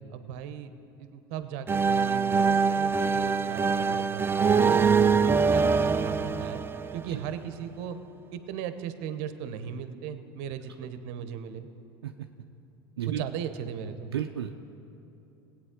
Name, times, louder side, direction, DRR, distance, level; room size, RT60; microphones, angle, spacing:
voice 1, 0.1-0.7 1.0-6.6 6.9-8.0 8.3-11.7 13.1-14.1, right 8 dB, 60° right, 10 dB, 0.8 m, -37 dB
sound 1, 1.7-7.4, right 5 dB, 20° right, 0.4 m, -24 dB
voice 2, 14.1-14.6, right 10 dB, 90° right, 4 dB, 0.4 m, -32 dB
18.0 x 8.6 x 3.7 m, 2.9 s
hypercardioid pair, 85°, 13 cm